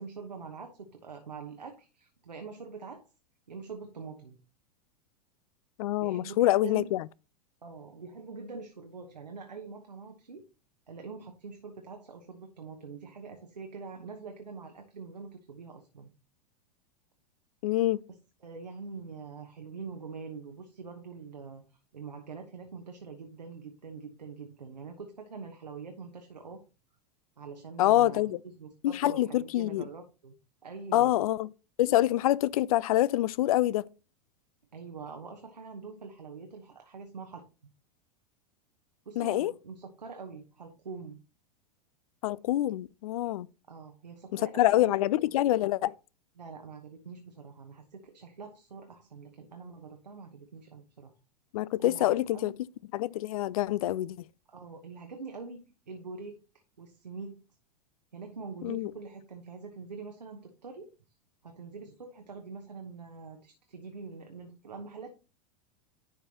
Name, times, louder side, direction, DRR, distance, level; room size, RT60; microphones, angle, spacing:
voice 1, 0.0-3.0 3.5-4.4 6.0-6.9 7.6-10.4 10.9-16.1 18.4-26.6 27.4-30.3 30.6-31.2 34.7-37.4 39.0-41.2 43.7-45.4 46.4-51.1 51.8-52.5 54.5-56.4 56.8-57.4 58.1-60.9 61.4-65.1, right 4 dB, 85° right, 1.0 m, -44 dB
voice 2, 5.8-7.0 17.6-18.0 27.8-28.4 28.8-29.8 30.9-31.5 31.8-33.9 39.2-39.5 42.2-43.5 44.3-45.9 51.5-52.5 52.9-54.2 58.6-58.9, left 15 dB, 60° left, 0.4 m, -26 dB
11.0 x 4.6 x 2.9 m
figure-of-eight pair, 90°, 21 cm